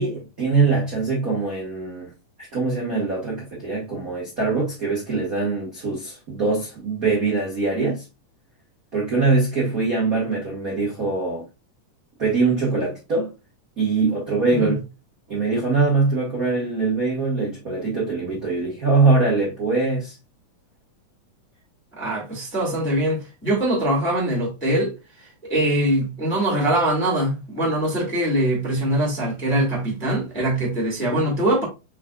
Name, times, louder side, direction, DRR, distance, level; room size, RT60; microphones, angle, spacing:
voice 1, 0.0-2.1 2.4-8.0 8.9-11.4 12.2-13.3 13.8-14.8 15.3-20.1, right 3 dB, 65° right, 0.8 m, -22 dB
voice 2, 22.0-31.6, right 1 dB, 5° left, 1.0 m, -23 dB
5.3 x 3.8 x 2.3 m
omnidirectional pair, 3.9 m